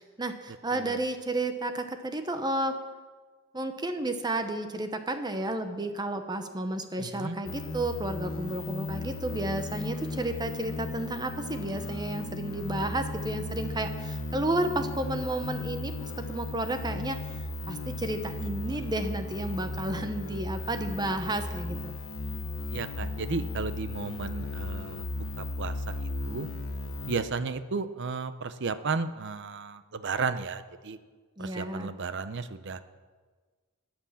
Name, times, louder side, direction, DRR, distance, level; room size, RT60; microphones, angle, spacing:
voice 1, 0.0-2.8 3.5-17.2 17.7-21.9 31.4-31.9, right 1 dB, 20° right, 8 dB, 0.8 m, -32 dB
voice 2, 7.0-7.4 22.7-26.5 27.1-31.0 31.4-32.8, right 4 dB, 60° right, 12 dB, 0.7 m, -34 dB
sound 1, 7.5-27.2, left 2 dB, 80° left, 1.1 m, -36 dB
13.0 x 8.9 x 7.1 m, 1.4 s
head